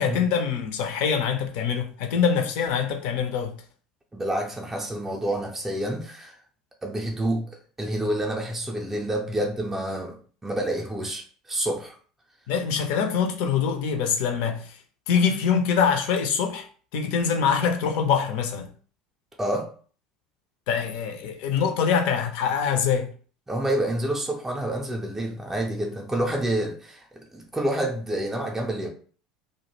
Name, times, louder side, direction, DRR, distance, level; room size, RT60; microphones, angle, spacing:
voice 1, 0.0-3.5 12.5-14.7 15.1-16.6 16.9-18.7 20.7-23.1, left 6 dB, 55° left, 0.4 m, -24 dB
voice 2, 4.1-6.3 6.8-12.0 19.4-19.7 23.5-28.9, right 1 dB, 10° right, 0.5 m, -28 dB
2.3 x 2.1 x 3.0 m
figure-of-eight pair, 70°, 3 cm